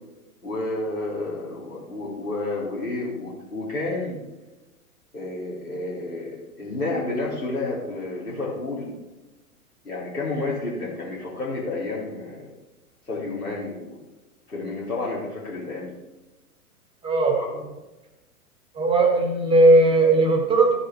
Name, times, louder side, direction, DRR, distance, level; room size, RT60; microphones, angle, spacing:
voice 1, 0.4-4.2 5.1-8.9 9.8-12.5 13.0-14.0 14.5-16.0 17.3-17.7, left 2 dB, 90° left, -8 dB, 2.7 m, -30 dB
voice 2, 17.0-17.4 18.7-20.7, right 2 dB, 10° right, 2 dB, 1.8 m, -17 dB
14.0 x 6.3 x 3.4 m, 1.1 s
figure-of-eight pair, 105°, 44 cm